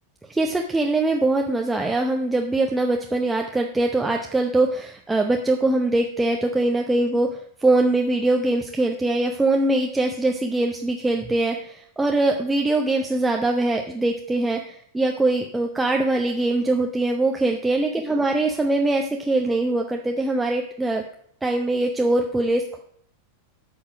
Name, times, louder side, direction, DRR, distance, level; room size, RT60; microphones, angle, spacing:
voice 1, 0.3-21.0 21.4-22.8, right 2 dB, 10° right, 2 dB, 0.8 m, -22 dB
8.8 x 5.6 x 6.1 m, 0.65 s
figure-of-eight pair, 90°, 0 cm